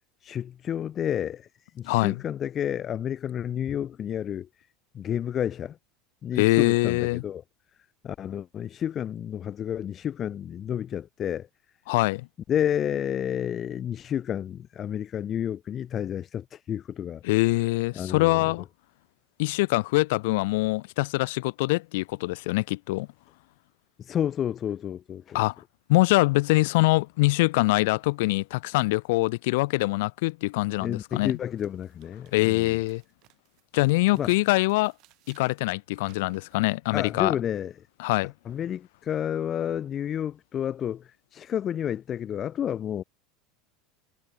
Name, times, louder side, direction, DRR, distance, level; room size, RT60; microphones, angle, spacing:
voice 1, 0.2-4.7 4.9-5.8 6.2-7.4 8.0-11.5 12.5-17.2 17.9-18.6 24.0-25.4 30.8-32.8 34.1-34.3 36.9-37.9 38.4-43.0, left 9 dB, 40° left, 0.7 m, -30 dB
voice 2, 6.4-7.2 11.9-12.3 17.2-18.6 19.4-23.1 25.3-25.5 25.9-31.3 32.3-33.0 33.7-34.9 35.3-37.3 38.0-38.3, left 22 dB, 70° left, 1.0 m, -24 dB
sound 1, 30.7-30.8 31.2-36.7, right 20 dB, 55° right, 6.9 m, -61 dB
hypercardioid pair, 80°, 0 cm